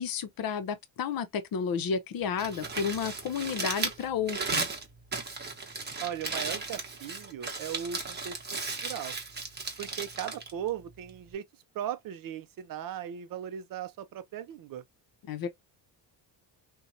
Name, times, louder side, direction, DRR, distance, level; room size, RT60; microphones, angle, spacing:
voice 1, 0.0-4.7 15.3-15.5, left 7 dB, 50° left, 0.6 m, -32 dB
Crumpling crinkling, 2.2-11.3, right 4 dB, 20° right, 0.9 m, -36 dB
voice 2, 6.0-9.1 9.8-11.4 11.7-14.8, right 10 dB, 50° right, 0.4 m, -38 dB
2.7 x 2.2 x 2.5 m
cardioid pair, 80°, 46 cm